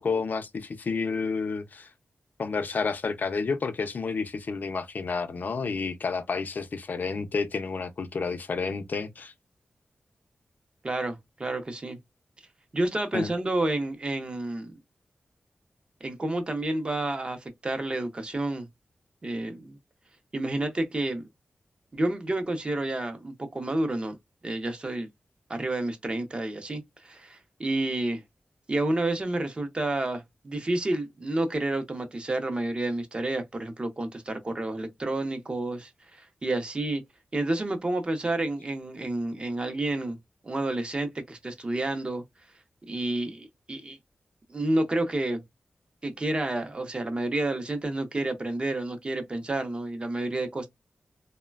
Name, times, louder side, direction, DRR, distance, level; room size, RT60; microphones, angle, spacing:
voice 1, 0.0-1.9 2.4-9.3 13.1-13.3, left 4 dB, 60° left, 0.4 m, -30 dB
voice 2, 10.8-12.0 12.7-14.7 16.0-18.7 19.2-19.8 20.3-21.3 21.9-24.2 24.4-25.1 25.5-28.2 28.7-37.0 37.3-40.2 40.4-42.2 42.9-44.0 44.5-45.4 46.0-50.7, right 2 dB, 30° right, 0.6 m, -30 dB
3.1 x 2.1 x 2.2 m
wide cardioid pair, 145°, 4 cm